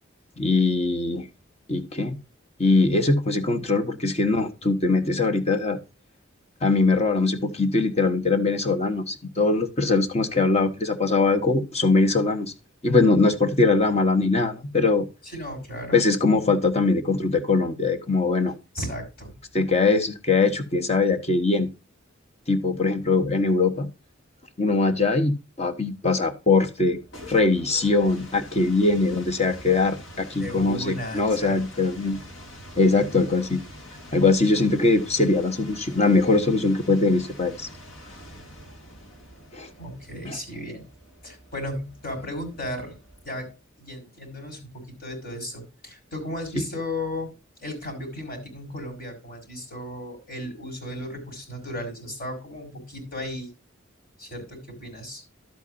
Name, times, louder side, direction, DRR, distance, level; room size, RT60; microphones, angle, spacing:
voice 1, 0.4-1.2 1.7-2.2 2.6-5.8 6.6-12.5 12.8-15.0 15.9-18.5 19.5-21.7 22.5-23.9 24.6-27.0 27.3-32.2 32.8-33.6 34.1-37.7 39.5-39.7 40.2-40.4, left 3 dB, 35° left, 1.2 m, -22 dB
voice 2, 15.2-16.0 18.7-19.3 30.4-31.8 39.8-40.8 41.2-42.9 43.2-43.5 43.8-47.3 47.6-53.5 54.2-55.2, left 1 dB, 50° left, 5.1 m, -35 dB
sound 1, 26.8-43.5, equal, 70° left, 2.3 m, -45 dB
12.0 x 8.2 x 2.6 m
head